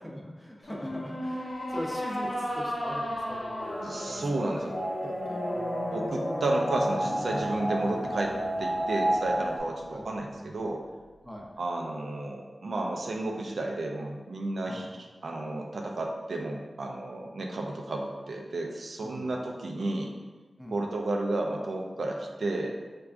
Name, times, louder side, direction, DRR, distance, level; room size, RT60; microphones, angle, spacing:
voice 1, 0.0-4.7 5.0-5.9 9.9-10.0 10.4-10.6 11.2-11.5 14.6-14.9 19.0-19.3 20.6-20.8, equal, ahead, -2 dB, 0.6 m, -41 dB
sound 1, 0.6-10.0, equal, 75° left, 0.7 m, -36 dB
sound 2, 3.6-9.6, right 1 dB, 25° left, 1.1 m, -32 dB
voice 2, 3.8-4.7 5.9-10.8 11.6-20.1 20.7-22.8, right 2 dB, 80° right, 0 dB, 0.4 m, -32 dB
4.5 x 2.2 x 2.4 m, 1.3 s
wide cardioid pair, 95°, 0 cm